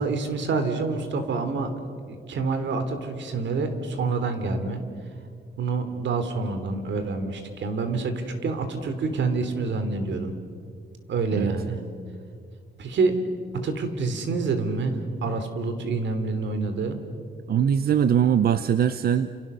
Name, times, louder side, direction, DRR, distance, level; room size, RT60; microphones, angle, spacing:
voice 1, 0.0-1.7 2.1-4.8 5.6-10.3 11.1-11.8 12.8-13.2 13.5-17.0, right 4 dB, 80° right, 8 dB, 3.1 m, -27 dB
voice 2, 17.5-19.3, right 8 dB, 55° right, 13 dB, 0.7 m, -21 dB
29.5 x 29.0 x 6.8 m, 2.3 s
wide cardioid pair, 170°, 19 cm